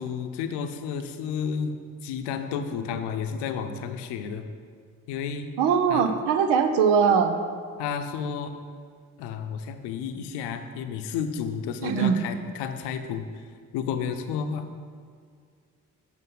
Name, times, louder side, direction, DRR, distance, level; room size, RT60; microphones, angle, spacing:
voice 1, 0.0-1.8 2.0-4.4 5.1-5.5 5.9-6.1 7.8-8.6 9.2-13.5 13.7-14.6, left 7 dB, 80° left, 8 dB, 0.7 m, -31 dB
voice 2, 5.6-7.4 11.8-12.2, right 6 dB, 75° right, 8 dB, 0.8 m, -21 dB
8.4 x 5.4 x 5.5 m, 2.1 s
hypercardioid pair, 45°, 40 cm